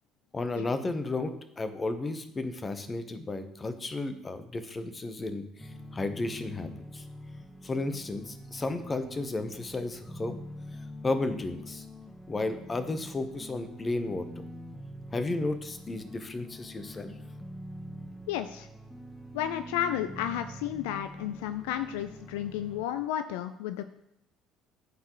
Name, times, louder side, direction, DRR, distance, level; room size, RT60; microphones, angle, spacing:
voice 1, 0.3-7.0 7.6-10.4 11.0-11.8 12.3-14.4 15.1-17.1, left 2 dB, 25° left, 9 dB, 0.9 m, -33 dB
sound 1, 5.6-22.9, equal, 5° left, 0.8 m, -45 dB
voice 2, 18.3-18.7 19.3-23.8, left 11 dB, 70° left, 10 dB, 0.3 m, -32 dB
12.5 x 4.5 x 3.1 m, 0.81 s
figure-of-eight pair, 55°, 0 cm